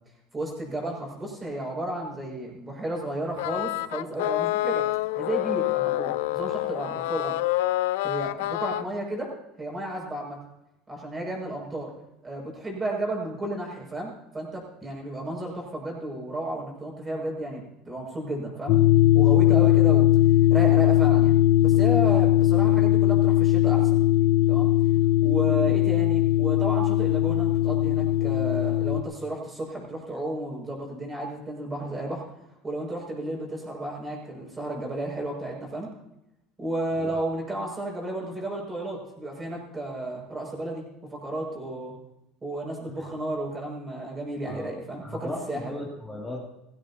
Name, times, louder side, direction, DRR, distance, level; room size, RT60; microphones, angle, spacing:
voice 1, 0.3-4.9 5.2-7.4 8.0-9.3 9.6-10.4 10.9-11.9 12.2-18.8 19.1-20.0 20.5-21.3 21.6-24.0 24.5-24.7 25.2-32.2 32.6-35.9 36.6-41.9 42.4-45.6, right 1 dB, 15° right, -2 dB, 6.3 m, -33 dB
sound 1, 3.4-8.8, left 17 dB, 85° left, 0.5 m, -27 dB
sound 2, 18.7-29.0, left 13 dB, 65° left, 0.8 m, -20 dB
voice 2, 45.0-46.4, left 2 dB, 10° left, -5 dB, 2.6 m, -37 dB
19.0 x 15.5 x 2.9 m, 0.87 s
supercardioid pair, 125°, 0 cm